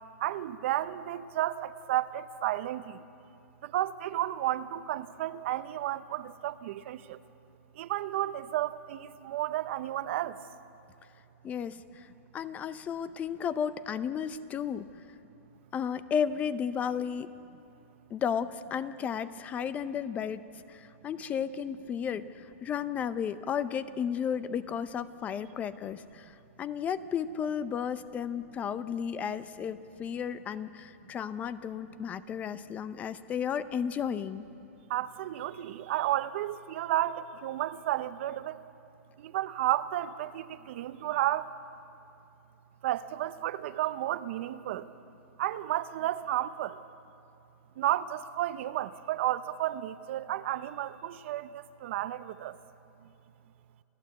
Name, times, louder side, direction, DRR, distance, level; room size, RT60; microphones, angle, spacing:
voice 1, 0.2-3.0 3.6-7.2 7.8-10.4 34.9-38.6 39.2-41.5 42.8-44.9 45.4-46.8 47.8-52.6, right 13 dB, 55° right, 13 dB, 0.8 m, -32 dB
voice 2, 11.4-14.9 15.7-17.3 18.1-34.4, left 7 dB, 20° left, 14 dB, 0.5 m, -33 dB
29.0 x 14.0 x 8.3 m, 2.8 s
hypercardioid pair, 150°, 8 cm